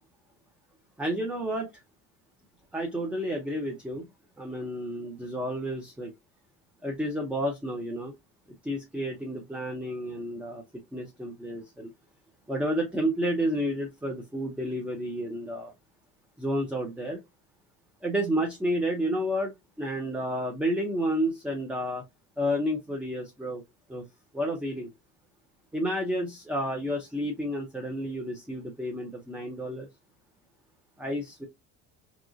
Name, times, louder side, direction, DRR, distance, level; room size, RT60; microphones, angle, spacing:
voice 1, 1.0-1.7 2.7-4.1 4.4-6.1 6.8-8.1 8.6-10.6 10.9-11.9 12.5-15.7 16.4-17.2 18.0-19.5 19.8-22.0 22.4-23.6 23.9-24.1 24.3-24.9 25.7-29.9 31.0-31.5, equal, 5° right, 0.4 m, -30 dB
2.8 x 2.5 x 2.5 m
cardioid pair, 135°, 35 cm